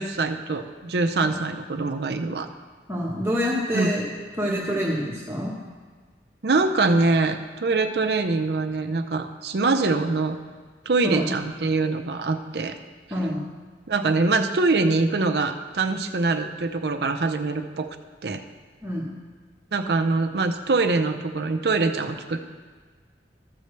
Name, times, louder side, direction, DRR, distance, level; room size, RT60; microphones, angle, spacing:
voice 1, 0.0-2.5 3.7-3.9 6.4-10.4 10.9-12.8 13.9-18.0 18.2-18.4 19.7-22.4, right 3 dB, 60° right, 7 dB, 0.6 m, -24 dB
voice 2, 2.9-4.0 4.4-5.5 11.0-11.3 13.1-13.4 18.8-19.1, equal, 15° right, -5 dB, 1.2 m, -26 dB
14.0 x 6.7 x 3.2 m, 1.5 s
head